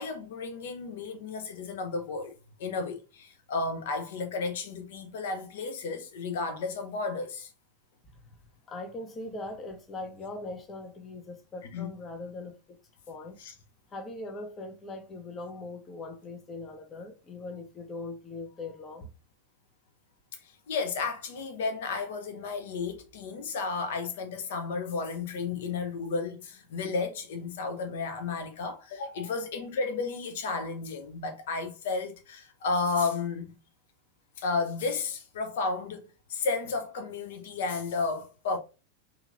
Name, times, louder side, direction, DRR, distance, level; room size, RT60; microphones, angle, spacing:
voice 1, 0.0-2.3 2.6-7.5 11.7-11.9 13.4-13.5 20.4-33.5 34.4-38.6, left 4 dB, 55° left, 0.7 m, -33 dB
voice 2, 8.7-12.8 13.1-13.4 13.9-19.1, left 2 dB, 25° left, 0.7 m, -40 dB
2.9 x 2.8 x 2.4 m
figure-of-eight pair, 90°, 0 cm